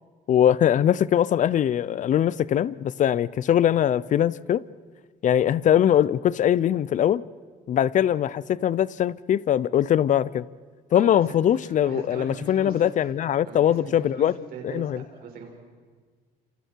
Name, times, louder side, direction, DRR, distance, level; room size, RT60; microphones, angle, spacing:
voice 1, 0.3-4.6 5.2-7.2 7.7-10.5 10.9-14.3 14.6-15.0, left 10 dB, 50° left, 0.6 m, -21 dB
voice 2, 10.9-12.8 13.4-15.5, right 5 dB, 65° right, 6.1 m, -40 dB
29.5 x 28.0 x 4.7 m
cardioid pair, 110°, 17 cm